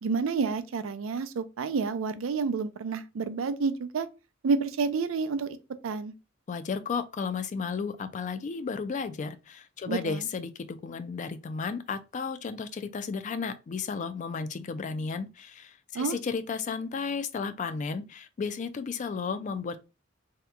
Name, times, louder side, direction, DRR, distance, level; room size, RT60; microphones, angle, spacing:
voice 1, 0.0-4.1 4.4-5.6 5.8-6.1 9.9-10.2 15.9-16.2, right 4 dB, 85° right, 0.4 m, -29 dB
voice 2, 6.5-19.8, left 5 dB, 40° left, 0.3 m, -33 dB
2.8 x 2.2 x 3.5 m
head